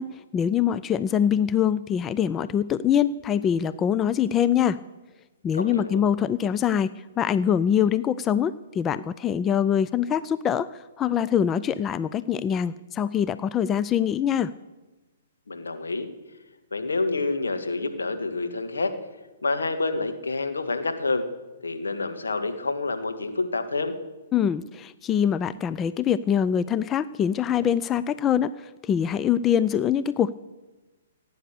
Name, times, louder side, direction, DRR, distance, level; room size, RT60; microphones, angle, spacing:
voice 1, 0.0-4.8 5.4-14.5 24.3-30.3, left 9 dB, 20° left, 15 dB, 0.4 m, -24 dB
voice 2, 5.5-6.0 15.5-16.1 16.7-18.9 19.4-21.3 21.6-23.9, left 3 dB, 80° left, 7 dB, 1.8 m, -28 dB
17.0 x 9.3 x 6.8 m, 1.1 s
figure-of-eight pair, 125°, 0 cm